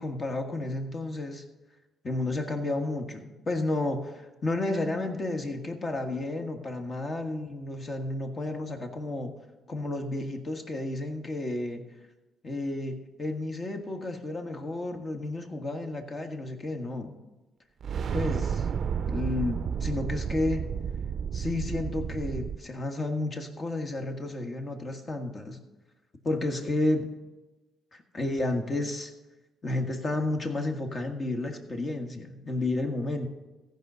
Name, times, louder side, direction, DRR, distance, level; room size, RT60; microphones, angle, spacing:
voice 1, 0.0-1.4 2.0-9.3 9.7-11.8 12.4-17.1 18.1-18.7 19.1-20.7 21.3-25.6 26.2-27.1 27.9-29.1 29.6-33.3, left 2 dB, 35° left, 5 dB, 1.5 m, -31 dB
sound 1, 17.8-22.6, right 7 dB, 55° right, 0.5 m, -31 dB
14.5 x 5.3 x 6.7 m, 1.1 s
cardioid pair, 90°, 0 cm